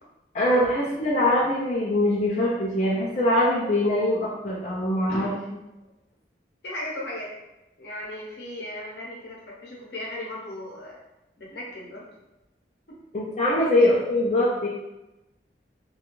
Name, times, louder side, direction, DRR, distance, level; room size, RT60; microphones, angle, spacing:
voice 1, 0.3-5.3 13.1-14.7, left 1 dB, 40° left, -6 dB, 0.4 m, -23 dB
voice 2, 6.6-7.3 7.8-11.0 11.4-12.1 12.9-13.0 13.8-13.9, left 1 dB, 70° left, -3 dB, 0.7 m, -37 dB
2.4 x 2.2 x 3.0 m, 0.96 s
head